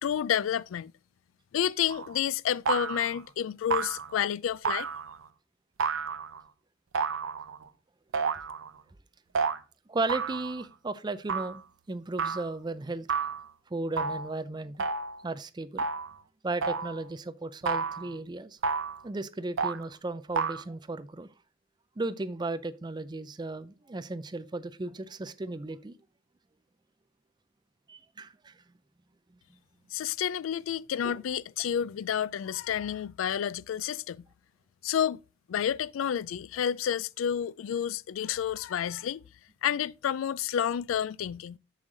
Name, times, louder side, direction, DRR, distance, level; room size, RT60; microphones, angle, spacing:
voice 1, 0.0-0.9 1.5-4.9 29.9-34.2 34.8-35.2 35.5-39.2 39.6-41.6, left 9 dB, 90° left, 0.3 m, -30 dB
sound 1, 1.9-2.2 2.7-3.2 3.7-4.2 4.6-5.2 5.8-6.4 6.9-7.7 8.1-8.7 9.3-9.6 10.1-10.6 11.3-11.6 12.2-12.5 13.1-13.5 14.0-14.3 14.8-15.2 15.8-16.2 16.6-17.0 17.7-18.1 18.6-19.0 19.6-19.9 20.3-20.6, right 5 dB, 85° right, 0.6 m, -31 dB
voice 2, 9.9-11.6 11.9-13.1 13.7-14.7 15.2-15.8 16.4-18.6 19.0-21.3 22.0-25.9 27.9-28.5 31.0-31.2, right 2 dB, 20° right, 0.4 m, -35 dB
7.3 x 6.5 x 3.8 m
head